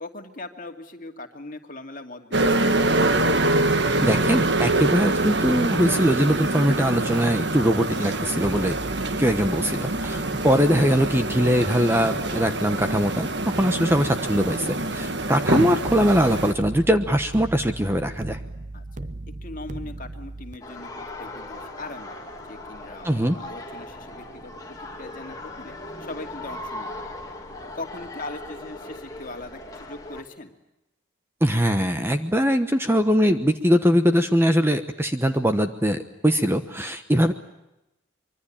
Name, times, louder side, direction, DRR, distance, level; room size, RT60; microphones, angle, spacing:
voice 1, 0.0-2.7 18.7-19.1 19.4-26.9 27.7-30.5, left 2 dB, 40° left, 4 dB, 2.6 m, -40 dB
sound 1, 2.3-16.5, right 2 dB, 55° right, 1.6 m, -25 dB
voice 2, 4.0-8.7 9.2-18.4 23.0-23.4 31.4-37.3, equal, 10° right, 8 dB, 1.1 m, -21 dB
sound 2, 8.4-13.4 15.8-20.6, right 2 dB, 40° right, 0.9 m, -38 dB
sound 3, 20.6-30.2, left 2 dB, 15° left, 2.9 m, -38 dB
25.0 x 24.0 x 8.8 m, 0.90 s
head